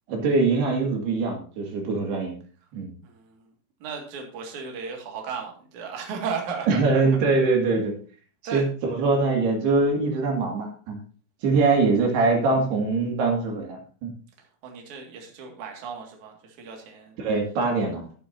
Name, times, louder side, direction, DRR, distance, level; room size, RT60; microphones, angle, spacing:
voice 1, 0.1-2.3 2.7-2.9 6.7-7.9 8.5-11.0 11.4-14.1 17.2-18.0, right 3 dB, 85° right, 1 dB, 4.2 m, -23 dB
voice 2, 3.0-3.4 3.8-6.9 8.4-8.6 11.5-11.8 14.6-17.1, right 5 dB, 55° right, 2 dB, 3.1 m, -35 dB
12.0 x 12.0 x 2.7 m, 0.40 s
omnidirectional pair, 4.5 m